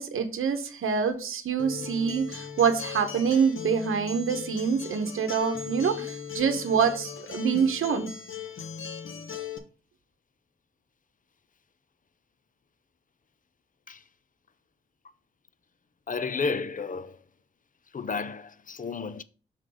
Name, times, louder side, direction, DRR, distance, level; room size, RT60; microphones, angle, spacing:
voice 1, 0.0-8.1, right 6 dB, 85° right, 0.9 m, -26 dB
Acoustic guitar, 1.6-9.6, left 7 dB, 75° left, 1.0 m, -38 dB
voice 2, 16.1-17.2 17.9-19.2, left 4 dB, 40° left, 0.5 m, -32 dB
6.2 x 3.9 x 4.9 m
cardioid pair, 75°, 21 cm